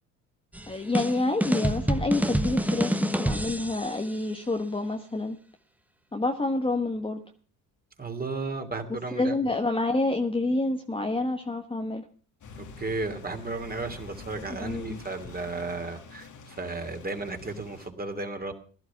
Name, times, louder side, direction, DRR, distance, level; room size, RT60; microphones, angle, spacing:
sound 1, 0.5-4.0, right 1 dB, 5° right, 1.2 m, -27 dB
voice 1, 0.7-5.4 6.1-7.2 9.1-12.0 14.6-15.0, left 2 dB, 10° left, 4 dB, 1.3 m, -28 dB
voice 2, 8.0-9.4 12.6-18.5, right 3 dB, 20° right, 6 dB, 2.8 m, -34 dB
sound 2, 12.4-17.9, left 4 dB, 45° left, 2.0 m, -46 dB
16.5 x 11.5 x 5.9 m, 0.41 s
supercardioid pair, 75°, 43 cm